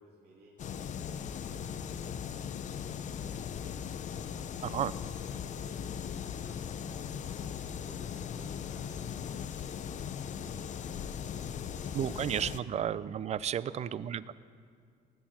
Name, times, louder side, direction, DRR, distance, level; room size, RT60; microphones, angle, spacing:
voice 1, 0.0-2.1 2.4-3.5 3.9-6.8 7.1-10.7 10.9-12.9 13.3-13.9, right 2 dB, 75° right, -5 dB, 2.8 m, -60 dB
sound 1, 0.6-12.6, left 8 dB, 45° left, 0.6 m, -39 dB
voice 2, 4.6-4.9 11.9-14.3, right 9 dB, 40° right, 18 dB, 0.5 m, -33 dB
19.0 x 8.4 x 7.3 m, 2.2 s
cardioid pair, 110°, 17 cm